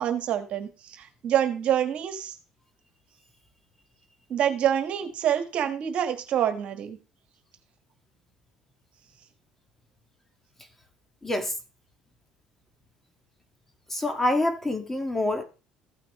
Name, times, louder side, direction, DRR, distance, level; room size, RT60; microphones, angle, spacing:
voice 1, 0.0-2.3 4.3-7.0, right 10 dB, 60° right, 1.5 m, -26 dB
voice 2, 11.2-11.5 13.9-15.4, left 1 dB, 10° left, 1.7 m, -26 dB
15.0 x 5.9 x 3.1 m
supercardioid pair, 90°, 2 cm